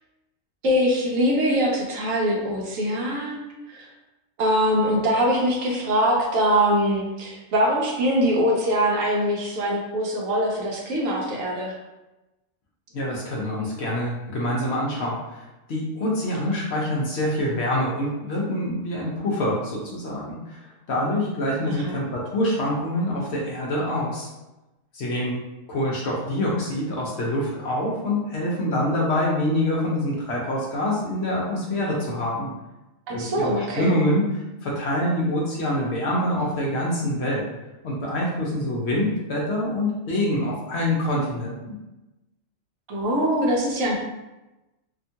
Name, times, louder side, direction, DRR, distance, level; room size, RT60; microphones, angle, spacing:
voice 1, 0.6-3.9 4.4-11.7 21.6-22.0 33.1-33.9 42.9-43.9, equal, 75° right, -1 dB, 1.0 m, -23 dB
voice 2, 12.9-15.4 15.7-20.6 20.9-24.3 24.9-25.4 25.7-32.5 33.1-34.3 34.6-37.5 37.8-41.8, left 1 dB, 60° left, -3 dB, 0.8 m, -25 dB
2.8 x 2.3 x 2.7 m, 1.0 s
omnidirectional pair, 1.4 m